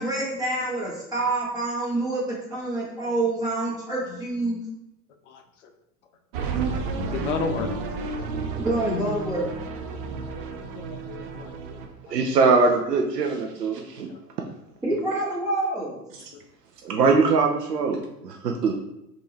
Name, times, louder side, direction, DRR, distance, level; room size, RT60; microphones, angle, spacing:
voice 1, 0.0-4.6 8.5-9.5 14.8-16.0, right 2 dB, 10° right, -6 dB, 1.4 m, -27 dB
voice 2, 5.3-5.7 7.1-7.7 10.3-11.8 12.1-12.2 14.1-14.2 16.3-16.4, left 5 dB, 45° left, 6 dB, 0.7 m, -34 dB
sound 1, 6.3-11.9, right 4 dB, 35° right, 0.5 m, -31 dB
voice 3, 12.1-14.1 16.8-18.9, right 4 dB, 75° right, 3 dB, 0.6 m, -22 dB
5.1 x 2.7 x 3.2 m, 0.83 s
figure-of-eight pair, 90°, 49 cm